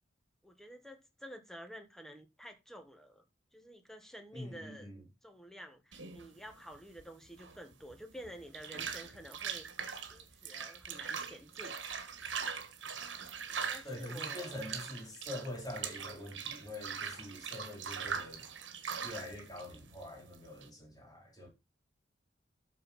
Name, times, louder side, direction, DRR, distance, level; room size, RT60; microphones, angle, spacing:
voice 1, 0.4-3.2 3.5-4.9 5.2-9.7 10.1-11.8 12.5-12.7 13.7-14.7, equal, ahead, 1.3 m, -51 dB
voice 2, 4.3-5.0 13.8-18.5 19.0-21.5, left 1 dB, 20° left, 3.6 m, -45 dB
sound 1, 5.9-20.7, right 6 dB, 75° right, 1.4 m, -42 dB
12.5 x 4.3 x 4.2 m
head